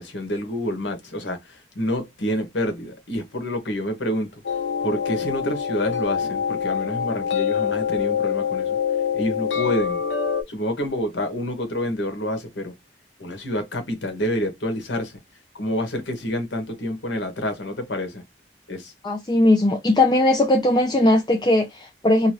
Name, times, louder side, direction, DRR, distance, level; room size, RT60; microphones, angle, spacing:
voice 1, 0.0-4.4 4.8-8.8 9.1-10.0 10.5-12.7 13.2-15.2 15.5-18.2 18.7-18.9, equal, 90° left, 1.1 m, -28 dB
sound 1, 4.4-10.4, left 7 dB, 70° left, 0.9 m, -25 dB
voice 2, 19.0-22.3, left 1 dB, 25° left, 0.5 m, -19 dB
2.8 x 2.5 x 3.0 m
head